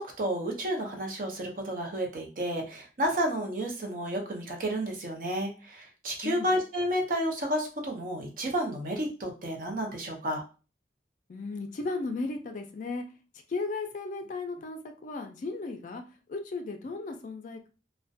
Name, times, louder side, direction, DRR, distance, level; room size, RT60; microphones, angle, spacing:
voice 1, 0.0-10.4, equal, 50° right, 1 dB, 0.6 m, -31 dB
voice 2, 11.3-13.0 13.5-16.0 16.3-17.7, left 3 dB, 45° left, 5 dB, 0.3 m, -35 dB
2.4 x 2.1 x 2.5 m, 0.34 s
head